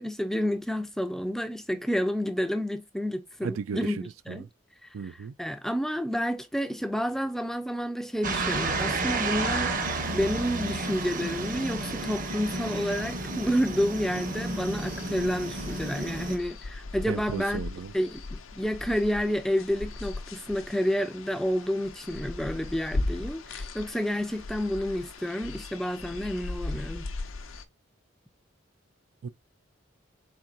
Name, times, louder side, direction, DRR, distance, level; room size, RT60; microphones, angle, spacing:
voice 1, 0.0-4.4 4.8-17.6 17.9-27.1, equal, ahead, 0.4 m, -30 dB
voice 2, 3.4-4.0 4.3-4.5 4.9-5.3 17.0-17.9 29.2-29.3, right 6 dB, 85° right, 0.4 m, -34 dB
sound 1, 8.2-16.4, right 3 dB, 40° right, 0.7 m, -31 dB
sound 2, 14.1-27.6, left 2 dB, 85° left, 0.6 m, -38 dB
4.3 x 3.6 x 2.5 m
head